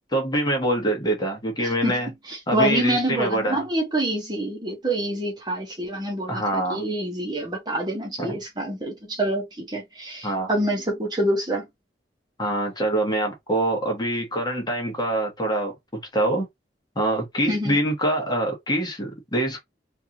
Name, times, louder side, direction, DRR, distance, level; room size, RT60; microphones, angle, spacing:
voice 1, 0.0-2.1 2.5-3.6 6.3-6.8 8.2-8.4 10.2-10.5 12.4-15.7 16.1-16.5 16.9-19.6, right 1 dB, 25° left, 1.2 m, -25 dB
voice 2, 1.6-2.0 2.3-11.6 17.5-17.8, right 1 dB, 25° right, 1.1 m, -26 dB
3.3 x 2.6 x 2.8 m
head